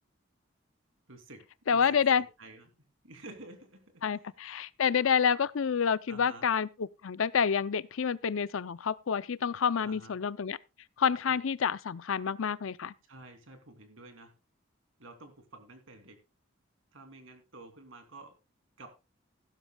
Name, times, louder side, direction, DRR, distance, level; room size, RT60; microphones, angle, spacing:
voice 1, 1.1-1.8 2.1-2.7 3.0-3.8 4.1-4.3 6.1-6.5 9.8-10.2 13.0-14.3 15.0-16.2 16.9-18.3 18.8-18.9, right 2 dB, 75° right, 2.9 m, -50 dB
voice 2, 1.7-2.2 4.0-10.6 11.0-12.9, left 6 dB, 80° left, 0.5 m, -28 dB
15.5 x 12.5 x 2.3 m
head